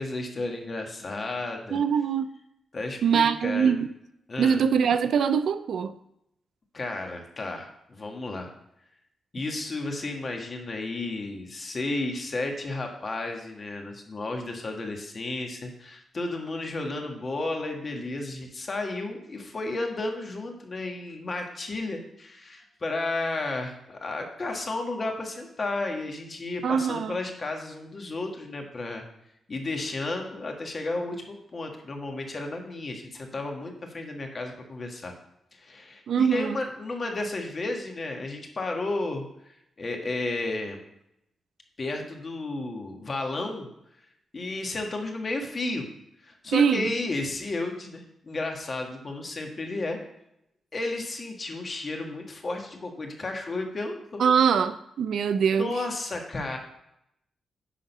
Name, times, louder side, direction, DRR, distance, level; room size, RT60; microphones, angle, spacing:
voice 1, 0.0-1.8 2.7-3.7 4.3-4.6 6.7-8.5 9.3-29.0 29.5-35.1 35.5-39.2 39.8-40.8 41.8-43.7 44.3-45.9 46.2-50.0 50.7-54.2 55.6-56.6, left 2 dB, 40° left, 1.5 m, -33 dB
voice 2, 1.7-2.3 3.0-3.9 4.4-5.9 26.6-27.2 36.1-36.6 46.5-46.9 54.2-55.7, right 7 dB, 75° right, 0.5 m, -23 dB
10.0 x 3.8 x 5.4 m
cardioid pair, 100°, 0 cm